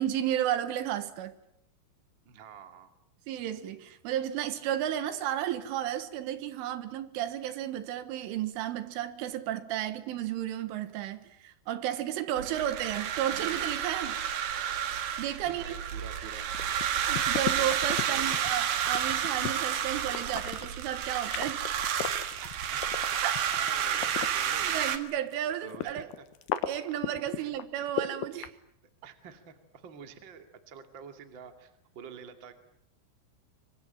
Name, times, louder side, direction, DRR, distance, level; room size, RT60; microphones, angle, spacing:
voice 1, 0.0-1.4 3.3-14.2 15.2-15.8 16.9-21.6 23.2-23.5 24.7-26.1 26.7-28.5, right 11 dB, 75° right, 3.8 m, -33 dB
voice 2, 2.2-2.9 12.4-12.6 15.5-16.5 18.1-18.6 22.7-23.2 23.5-24.8 25.6-26.3 27.3-27.6 29.0-32.5, right 6 dB, 35° right, 2.0 m, -48 dB
sound 1, 12.4-25.0, right 9 dB, 60° right, 2.6 m, -31 dB
sound 2, 16.5-24.7 25.1-28.5, left 13 dB, 70° left, 2.8 m, -35 dB
25.0 x 24.5 x 9.0 m
omnidirectional pair, 5.8 m